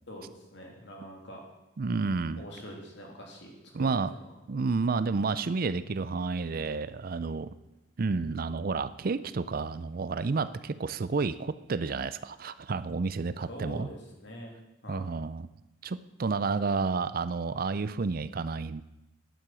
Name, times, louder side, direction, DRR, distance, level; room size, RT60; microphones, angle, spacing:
voice 1, 0.1-1.4 2.4-3.9 4.2-4.3 13.5-14.5 14.8-15.1, equal, 60° left, 1 dB, 3.1 m, -44 dB
voice 2, 1.8-2.4 3.7-4.1 4.5-7.5 8.0-13.9 14.9-15.5 15.8-18.8, right 4 dB, 45° right, 15 dB, 0.4 m, -30 dB
12.5 x 10.5 x 6.2 m, 0.98 s
head